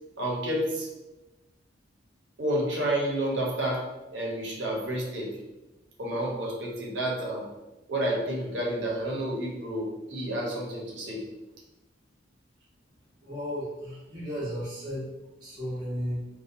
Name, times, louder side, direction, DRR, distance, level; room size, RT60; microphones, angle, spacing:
voice 1, 0.2-0.9 2.4-5.3 6.0-7.5 7.9-11.2, right 1 dB, 65° right, -3 dB, 0.7 m, -30 dB
voice 2, 13.2-15.0 15.4-16.2, equal, 25° right, -10 dB, 0.8 m, -34 dB
2.7 x 2.2 x 2.4 m, 1.0 s
head